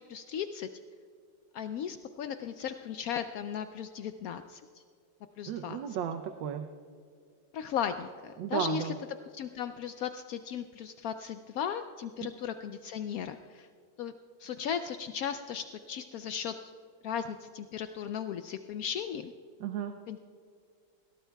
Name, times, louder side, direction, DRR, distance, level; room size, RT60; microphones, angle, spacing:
voice 1, 0.1-0.7 1.5-4.8 5.4-6.0 7.5-8.9 9.3-13.7 14.0-14.1 14.4-16.5 17.0-19.3 20.1-20.2, left 8 dB, 80° left, 9 dB, 0.8 m, -36 dB
voice 2, 5.5-6.6 8.4-8.9 19.6-19.9, right 8 dB, 80° right, 6 dB, 1.4 m, -34 dB
21.0 x 17.5 x 2.3 m, 2.2 s
omnidirectional pair, 2.0 m